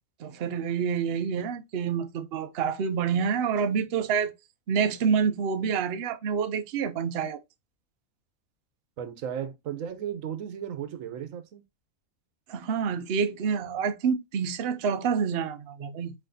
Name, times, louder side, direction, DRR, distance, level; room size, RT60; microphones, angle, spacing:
voice 1, 0.2-4.3 4.7-7.4 12.5-16.1, right 6 dB, 55° right, 0.8 m, -27 dB
voice 2, 9.0-11.6, right 9 dB, 90° right, 1.2 m, -35 dB
4.5 x 4.3 x 2.6 m
omnidirectional pair, 1.3 m